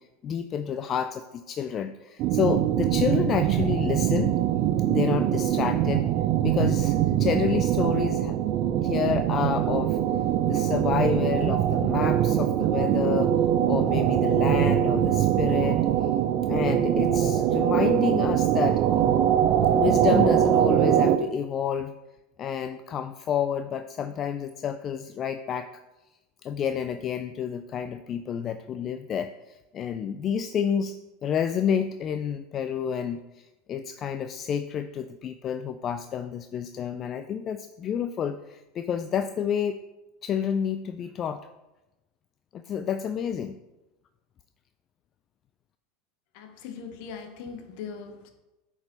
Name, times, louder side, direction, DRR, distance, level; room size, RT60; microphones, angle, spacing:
voice 1, 0.0-4.4 4.9-6.1 6.4-8.4 8.8-10.0 10.5-13.3 13.7-15.9 16.5-18.8 19.7-21.9 22.4-25.7 26.4-39.8 40.2-41.4 42.5-43.6, left 8 dB, 40° left, 10 dB, 0.3 m, -29 dB
sound 1, 2.2-21.2, right 11 dB, 50° right, 0.5 m, -23 dB
voice 2, 46.3-48.3, left 6 dB, 60° left, 7 dB, 1.1 m, -40 dB
8.0 x 5.0 x 3.9 m, 1.0 s
hypercardioid pair, 80°, 0 cm